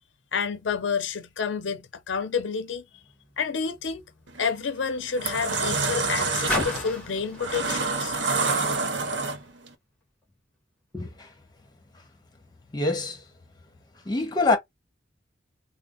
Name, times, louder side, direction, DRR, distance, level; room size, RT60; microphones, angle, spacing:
voice 1, 0.3-2.8 3.4-4.0 4.4-8.1, left 6 dB, 85° left, 0.6 m, -29 dB
Car, 2.9-9.5 10.3-10.4, left 2 dB, 5° left, 1.3 m, -37 dB
sound 1, 4.3-4.5 5.0-9.7, right 4 dB, 70° right, 0.8 m, -27 dB
voice 2, 10.9-11.3 12.7-13.2 14.0-14.6, left 3 dB, 25° left, 1.1 m, -25 dB
3.5 x 2.0 x 3.8 m
head